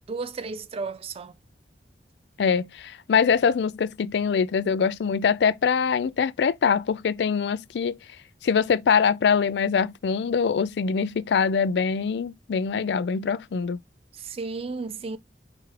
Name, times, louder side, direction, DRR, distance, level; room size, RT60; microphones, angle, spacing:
voice 1, 0.0-1.4 14.1-15.2, right 4 dB, 35° right, 0.4 m, -33 dB
voice 2, 2.4-8.0 8.4-13.8, left 6 dB, 70° left, 0.4 m, -23 dB
4.9 x 3.1 x 2.9 m
head